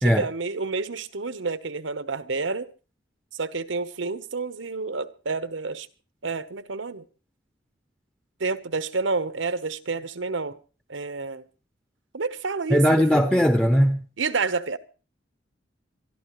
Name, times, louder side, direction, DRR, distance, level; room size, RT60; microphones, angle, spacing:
voice 1, 0.0-2.7 3.3-5.9 6.2-7.0 8.4-10.6 10.9-11.4 12.1-13.2 14.2-14.8, right 4 dB, 90° right, 1.0 m, -29 dB
voice 2, 12.7-14.1, equal, 5° left, 0.7 m, -19 dB
25.0 x 13.0 x 3.1 m
head